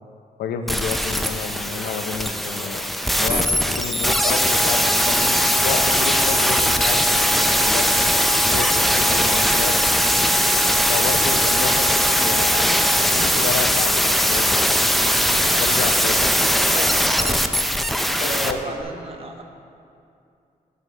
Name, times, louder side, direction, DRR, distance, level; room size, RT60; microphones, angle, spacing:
voice 1, 0.4-9.8 10.9-14.7 15.6-16.3 18.2-18.6, left 6 dB, 85° left, 7 dB, 0.5 m, -30 dB
sound 1, 0.7-18.5 18.8-18.9, equal, ahead, 0.4 m, -20 dB
sound 2, 4.0-13.0, left 1 dB, 60° right, 1.9 m, -30 dB
voice 2, 16.2-17.5 18.2-19.4, right 2 dB, 35° right, 2 dB, 1.0 m, -33 dB
12.5 x 5.5 x 3.4 m, 2.5 s
cardioid pair, 80°, 16 cm